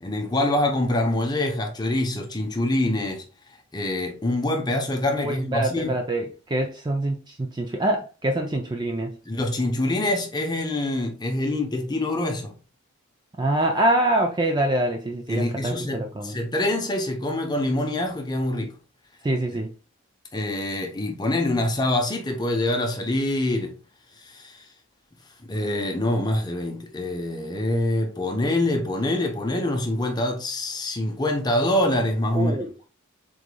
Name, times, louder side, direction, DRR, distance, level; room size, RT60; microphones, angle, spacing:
voice 1, 0.0-3.2 3.7-5.9 9.3-12.5 15.3-18.7 20.3-23.8 24.3-24.6 25.5-32.7, left 1 dB, 20° left, 0.7 m, -25 dB
voice 2, 5.2-9.2 13.4-16.4 19.2-19.7 32.3-32.9, right 1 dB, 20° right, 0.4 m, -25 dB
4.8 x 3.9 x 2.2 m
head